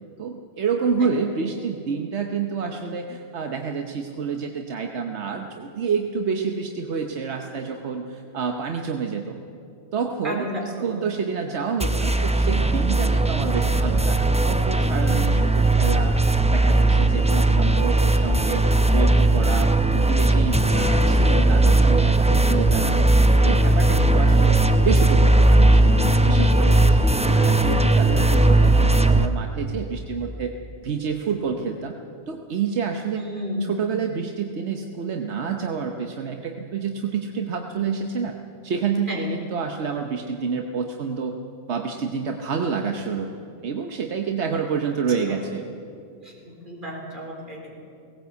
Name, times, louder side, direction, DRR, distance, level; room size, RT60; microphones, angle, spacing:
voice 1, 0.2-9.4 9.9-18.6 18.9-23.1 23.4-30.5 30.8-31.9 32.3-38.3 38.6-41.3 41.7-43.3 43.6-45.6, right 6 dB, 80° right, 4 dB, 1.3 m, -28 dB
voice 2, 10.2-11.0 14.9-15.2 27.3-27.5 33.2-33.8 39.1-39.2 46.2-47.8, equal, 45° right, -1 dB, 4.3 m, -33 dB
sound 1, 11.8-29.3, right 2 dB, 10° right, 0.5 m, -18 dB
18.0 x 17.5 x 8.2 m, 2.5 s
omnidirectional pair, 1.1 m